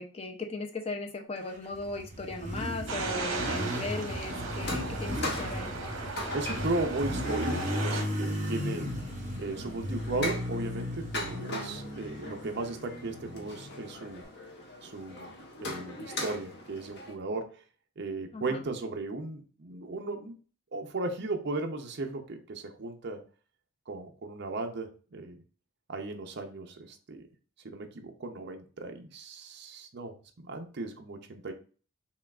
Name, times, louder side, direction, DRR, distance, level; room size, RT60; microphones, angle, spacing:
voice 1, 0.0-5.7 18.3-18.6, left 2 dB, 30° left, 4 dB, 0.5 m, -37 dB
Motorcycle, 1.5-14.2, left 1 dB, 35° right, 0.9 m, -36 dB
sound 1, 2.9-8.0, right 3 dB, 70° right, 1.0 m, -36 dB
sound 2, 3.6-17.1, left 1 dB, 50° left, 0.8 m, -41 dB
voice 2, 6.3-8.9 9.4-14.2 14.8-15.3 15.6-17.5 18.0-20.3 20.7-23.2 23.9-25.4 25.9-27.2 27.6-31.5, right 2 dB, 55° right, 4 dB, 0.5 m, -36 dB
5.7 x 2.3 x 2.3 m, 0.39 s
head